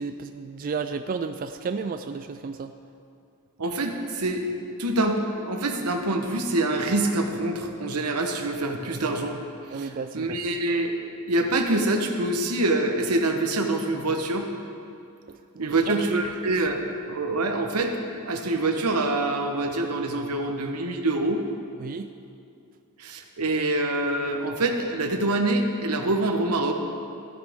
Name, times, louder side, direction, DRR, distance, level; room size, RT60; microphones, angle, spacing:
voice 1, 0.0-2.7 9.7-10.4 15.6-16.2 21.8-22.1, right 5 dB, 40° right, 8 dB, 0.3 m, -32 dB
voice 2, 3.6-4.5 4.8-9.4 9.7-10.9 11.3-14.5 15.6-18.0 18.3-21.4 23.0-26.7, right 2 dB, 90° right, 4 dB, 1.2 m, -25 dB
15.0 x 11.0 x 3.6 m, 2.5 s
head